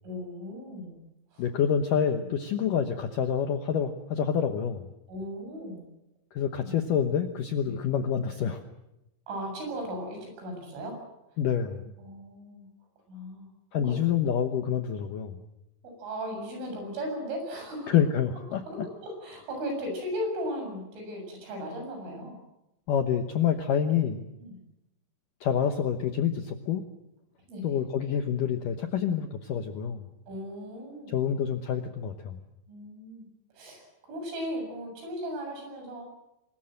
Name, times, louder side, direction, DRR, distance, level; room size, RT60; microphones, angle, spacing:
voice 1, 0.0-1.0 1.3-1.5 2.6-2.7 5.1-5.9 6.6-6.8 7.7-7.8 9.3-11.0 12.0-12.7 13.1-13.5 13.7-14.0 15.8-18.0 18.5-22.4 24.4-24.6 27.5-27.8 30.3-31.2 32.7-33.3 33.6-36.0, equal, 80° right, 3 dB, 9.7 m, -37 dB
voice 2, 1.4-4.8 6.3-8.6 11.4-11.9 13.7-15.4 17.9-18.6 22.9-24.2 25.4-26.8 27.6-30.0 31.1-32.4, left 8 dB, 90° left, 6 dB, 1.8 m, -27 dB
25.0 x 20.5 x 7.7 m, 0.90 s
omnidirectional pair, 5.5 m